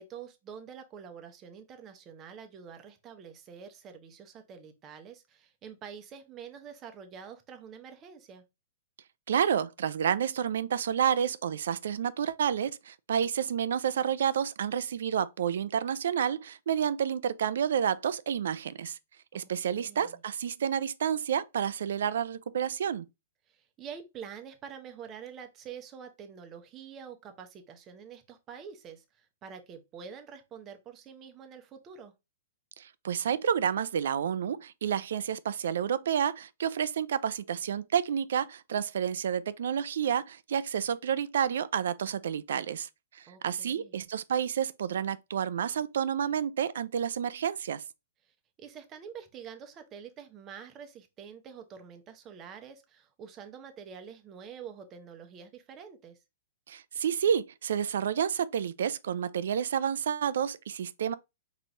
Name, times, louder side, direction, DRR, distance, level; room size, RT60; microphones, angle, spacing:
voice 1, 0.0-8.4 19.3-20.2 23.5-32.1 43.3-44.1 48.2-56.2, right 7 dB, 25° right, 0.8 m, -47 dB
voice 2, 9.3-19.0 19.3-23.1 32.8-47.8 56.7-61.1, right 8 dB, 70° right, 0.4 m, -30 dB
4.5 x 3.0 x 2.6 m
hypercardioid pair, 140°, 0 cm